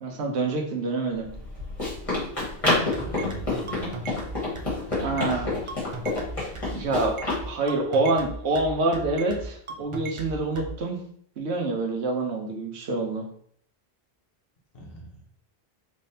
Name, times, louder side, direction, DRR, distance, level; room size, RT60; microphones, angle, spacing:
voice 1, 0.0-1.3 5.0-5.5 6.7-7.2 7.4-11.0 11.4-13.3, right 2 dB, 85° right, 2 dB, 1.0 m, -26 dB
Run, 1.2-7.4, left 2 dB, 30° left, 1.5 m, -28 dB
voice 2, 2.9-4.2 4.8-5.7 14.7-15.2, right 1 dB, 60° left, -2 dB, 1.1 m, -40 dB
sound 1, 2.9-10.7, right 4 dB, 50° right, 0.4 m, -37 dB
3.4 x 3.2 x 2.7 m, 0.63 s
omnidirectional pair, 1.1 m